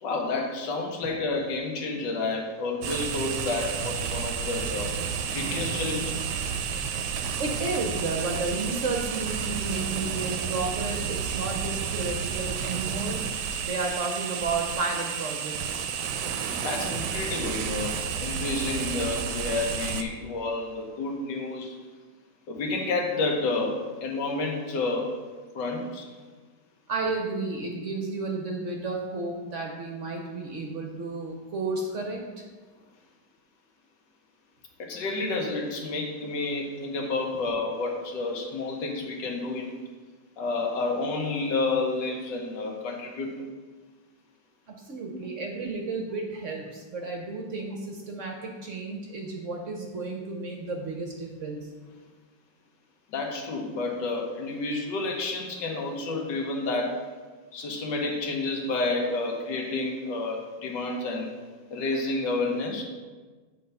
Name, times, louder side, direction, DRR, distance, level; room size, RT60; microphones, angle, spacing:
voice 1, 0.0-4.9 5.3-6.3 16.6-21.8 22.5-25.1 25.5-26.1 34.8-39.8 40.4-43.5 45.1-45.2 53.1-57.0 57.5-61.4 61.7-62.8, left 3 dB, 70° left, 1 dB, 1.7 m, -30 dB
sound 1, 2.8-20.0, right 7 dB, 75° right, 1.1 m, -31 dB
voice 2, 7.4-13.2 13.6-15.8 26.9-32.4 44.7-51.7, right 3 dB, 55° right, 1 dB, 0.9 m, -32 dB
8.3 x 3.4 x 5.4 m, 1.3 s
omnidirectional pair, 2.0 m